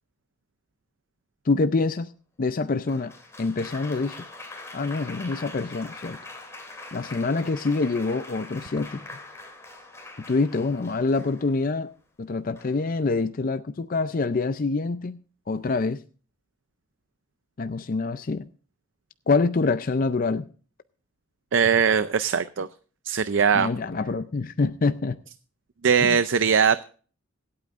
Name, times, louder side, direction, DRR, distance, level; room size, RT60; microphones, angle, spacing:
voice 1, 1.5-2.1 2.4-3.1 3.4-4.3 4.7-6.2 6.9-9.0 10.3-11.9 12.2-15.2 15.5-16.0 17.6-18.5 19.3-20.4 23.5-25.2 26.0-26.2, left 3 dB, 40° left, 0.4 m, -26 dB
Applause, 2.9-11.7 12.6-13.0, left 2 dB, 15° left, 2.8 m, -43 dB
voice 2, 21.5-22.7 23.1-23.7 25.8-26.8, right 6 dB, 60° right, 0.5 m, -20 dB
26.0 x 8.7 x 2.5 m
head